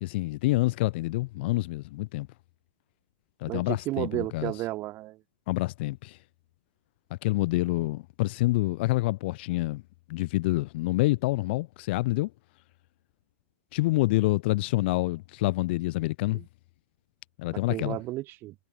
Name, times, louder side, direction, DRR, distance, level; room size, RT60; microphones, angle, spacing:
voice 1, 0.0-2.3 3.4-4.5 5.5-6.2 7.1-9.8 10.1-12.3 13.7-16.4 17.4-18.0, left 20 dB, 55° left, 1.1 m, -27 dB
voice 2, 3.5-5.2 16.3-16.4 17.5-18.5, right 17 dB, 35° right, 0.9 m, -33 dB
hypercardioid pair, 135°, 7 cm